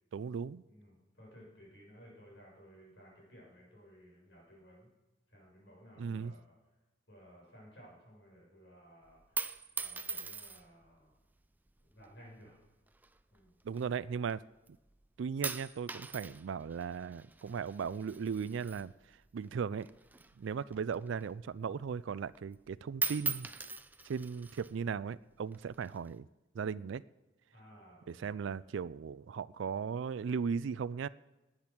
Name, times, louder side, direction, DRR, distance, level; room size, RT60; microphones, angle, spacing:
voice 1, 0.1-0.6 6.0-6.3 13.6-14.4 15.2-19.9 20.4-23.5 24.0-26.3 26.5-27.0 28.1-31.1, right 6 dB, 70° right, 19 dB, 0.4 m, -37 dB
voice 2, 0.7-4.9 5.3-6.6 7.1-9.4 9.7-11.1 11.9-12.6 13.3-13.5 27.5-28.3 28.6-28.8, equal, 60° left, -3 dB, 6.8 m, -57 dB
sound 1, 9.1-10.8 11.7-12.1 12.9-14.3 14.7-15.1 15.4-19.5 19.8-21.5 21.8-21.9 22.3-22.7 22.9-24.7 25.5-26.1, right 4 dB, 10° right, 0.5 m, -41 dB
19.5 x 8.8 x 6.0 m, 1.1 s
head